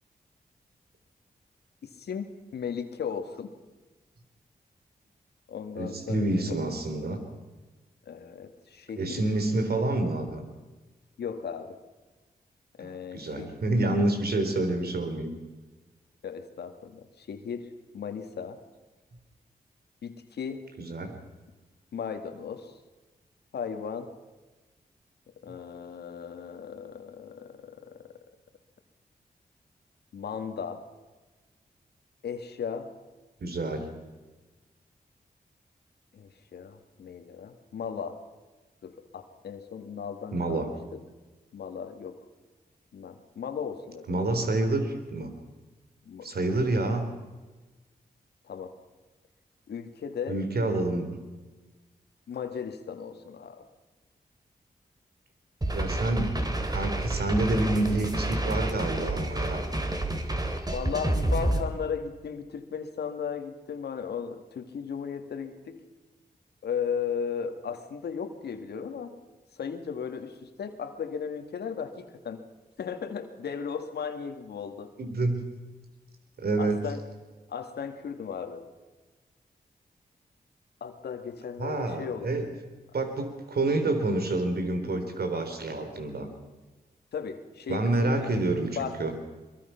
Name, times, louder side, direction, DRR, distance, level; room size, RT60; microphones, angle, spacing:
voice 1, 1.8-3.5 5.5-6.6 8.1-9.3 11.2-11.8 12.8-13.5 16.2-18.6 20.0-20.6 21.9-22.7 23.5-24.1 25.4-28.1 30.1-30.8 32.2-32.9 36.1-38.2 38.8-41.0 41.5-42.2 42.9-44.2 46.1-46.6 48.5-48.7 49.7-50.4 52.3-53.7 60.7-65.8 66.6-69.1 69.5-72.4 72.8-74.9 76.6-77.0 77.5-78.7 80.8-82.3 87.1-88.3 88.8-89.0, left 7 dB, 90° left, 7 dB, 1.9 m, -36 dB
voice 2, 5.8-7.2 9.0-10.4 12.8-15.3 20.8-21.2 33.4-33.9 40.3-40.7 44.1-45.3 46.2-47.1 50.3-51.1 55.7-59.6 75.0-75.5 76.4-76.8 81.6-82.4 82.9-86.3 87.7-89.1, right 2 dB, 75° right, 6 dB, 3.8 m, -28 dB
sound 1, 55.6-61.6, right 1 dB, 25° right, 3.1 m, -29 dB
23.0 x 22.5 x 5.8 m, 1.2 s
cardioid pair, 50°, 16 cm